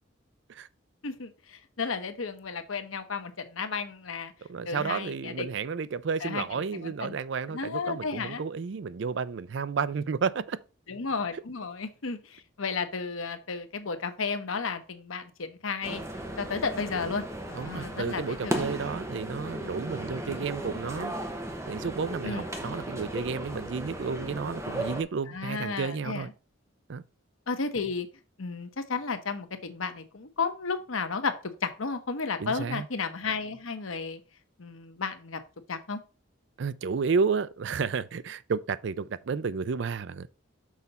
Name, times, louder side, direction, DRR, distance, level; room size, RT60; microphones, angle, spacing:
voice 1, 1.0-4.3 4.6-5.5 6.2-6.4 6.7-7.2 7.5-8.4 10.9-16.0 16.4-18.7 22.2-22.5 25.3-26.3 27.5-28.1 28.4-34.2 34.6-35.4 35.7-36.0, left 4 dB, 85° left, 1.0 m, -33 dB
voice 2, 4.5-10.6 17.6-21.1 21.7-26.3 26.9-27.0 32.4-32.9 36.6-40.3, right 5 dB, 60° right, 0.4 m, -31 dB
sound 1, 15.8-25.0, right 1 dB, 15° right, 0.9 m, -36 dB
6.3 x 4.0 x 5.5 m
head